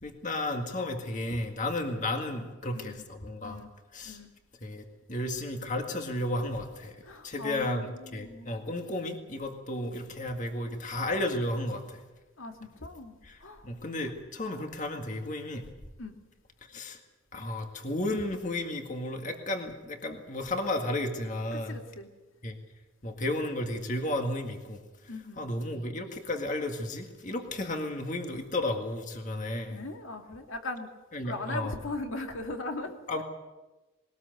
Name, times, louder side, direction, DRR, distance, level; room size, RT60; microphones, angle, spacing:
voice 1, 0.0-3.6 3.9-4.2 4.6-7.0 7.2-12.0 13.2-13.4 13.6-15.6 16.7-17.0 17.3-21.8 22.4-22.6 23.0-24.8 25.4-29.8 31.1-31.8 33.1-33.2, left 1 dB, 35° left, 4 dB, 1.9 m, -33 dB
voice 2, 7.0-8.5 12.4-13.7 16.0-16.1 21.5-22.1 25.1-25.5 29.7-30.9 31.2-33.2, left 2 dB, 75° left, 4 dB, 2.2 m, -39 dB
21.5 x 19.0 x 8.0 m, 1.1 s
head